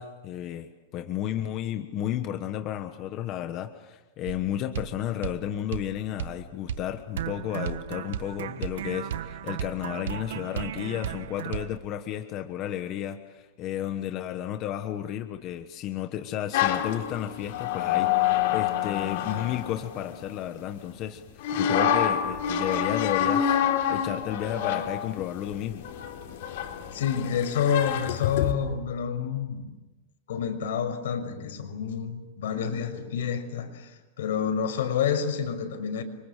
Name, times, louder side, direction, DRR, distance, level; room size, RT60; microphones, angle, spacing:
voice 1, 0.0-23.6 23.9-25.8, left 11 dB, 25° left, 7 dB, 1.3 m, -33 dB
sound 1, 4.3-4.4 4.7-4.9 5.2-5.4 5.7-5.9 6.2-6.4 6.7-6.9 7.2-11.8, right 10 dB, 90° right, 1.4 m, -34 dB
sound 2, 16.5-20.5 21.4-28.5, left 9 dB, 55° left, 4.1 m, -27 dB
voice 2, 26.9-29.7 30.3-36.0, left 7 dB, 85° left, 6 dB, 6.2 m, -28 dB
30.0 x 26.0 x 7.6 m, 1.1 s
supercardioid pair, 180°, 0 cm